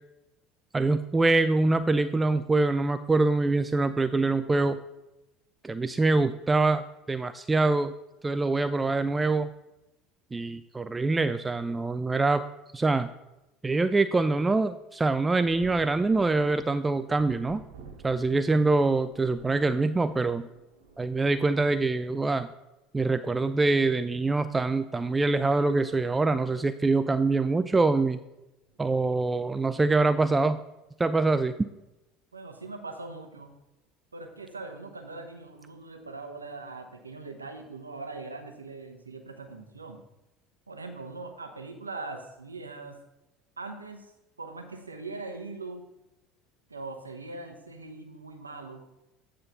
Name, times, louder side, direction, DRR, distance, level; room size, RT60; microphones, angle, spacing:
voice 1, 0.7-4.8 5.6-7.9 8.2-9.5 10.3-12.4 12.7-13.1 13.6-17.6 18.0-20.5 21.0-22.5 22.9-28.2 28.8-30.6 31.0-31.5, right 3 dB, 15° right, 12 dB, 0.3 m, -24 dB
Thunder, 15.4-22.5 23.5-23.6 25.1-25.3 25.7-25.8 27.7-28.0 28.7-29.0, right 4 dB, 75° right, 1.2 m, -51 dB
voice 2, 32.3-33.5 34.1-40.0 40.7-43.0 43.6-44.1 44.4-45.8 46.7-48.8, right 3 dB, 90° right, 5 dB, 0.8 m, -41 dB
9.3 x 3.8 x 5.7 m, 0.95 s
figure-of-eight pair, 70°, 0 cm